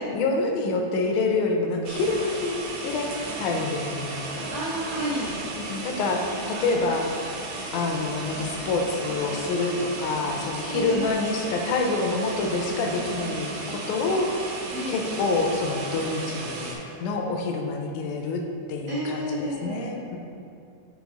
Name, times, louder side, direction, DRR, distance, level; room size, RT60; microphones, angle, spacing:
voice 1, 0.0-3.1 3.4-4.5 5.6-6.2 6.5-7.1 7.7-14.6 14.9-16.7 17.0-18.4 18.7-20.2, left 3 dB, 90° left, 2 dB, 2.1 m, -27 dB
sound 1, 1.8-16.7, right 2 dB, 80° right, 2.1 m, -35 dB
voice 2, 4.5-5.3 10.6-11.1 14.7-15.0 18.9-19.8, equal, 60° right, -10 dB, 0.9 m, -30 dB
5.2 x 3.9 x 4.8 m, 2.5 s
omnidirectional pair, 3.4 m